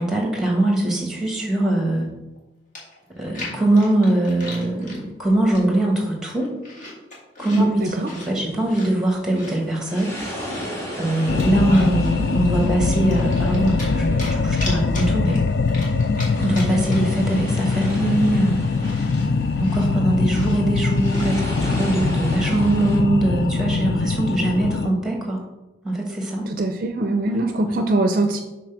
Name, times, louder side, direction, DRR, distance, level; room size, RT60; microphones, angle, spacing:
voice 1, 0.0-2.1 3.2-6.5 7.4-10.2 11.0-15.4 16.4-19.1 19.6-25.4 25.8-26.5 27.2-27.8, right 1 dB, 5° right, 0 dB, 1.4 m, -22 dB
Chewing mastication, 2.4-2.5 2.8-5.0 5.5-5.9 6.2-8.3 8.7-10.8 11.2-12.2 12.5-13.9 14.2-17.2 17.5-17.6 17.9-21.9, left 2 dB, 40° left, 1.8 m, -38 dB
voice 2, 7.5-8.1 26.5-28.4, right 2 dB, 45° right, 6 dB, 0.5 m, -22 dB
sound 1, 7.8-23.0, equal, 15° left, 1.5 m, -37 dB
sound 2, 11.3-24.9, left 4 dB, 60° left, 0.4 m, -22 dB
6.0 x 4.2 x 5.8 m, 1.0 s
head